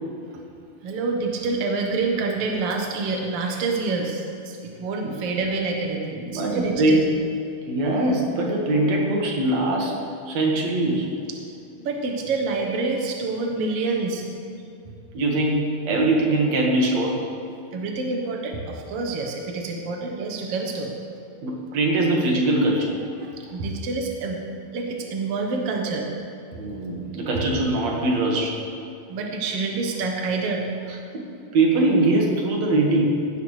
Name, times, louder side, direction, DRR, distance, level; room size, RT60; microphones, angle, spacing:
voice 1, 0.8-7.0 11.8-14.3 17.7-20.9 23.2-24.4 24.7-26.1 29.1-30.9, right 3 dB, 80° right, 1 dB, 1.3 m, -27 dB
voice 2, 6.2-7.1 7.7-10.0 10.3-11.1 15.1-17.2 21.4-23.0 26.5-28.6 31.1-31.2 31.5-33.2, right 2 dB, 55° right, -1 dB, 2.5 m, -22 dB
16.5 x 12.5 x 3.3 m, 2.7 s
omnidirectional pair, 4.5 m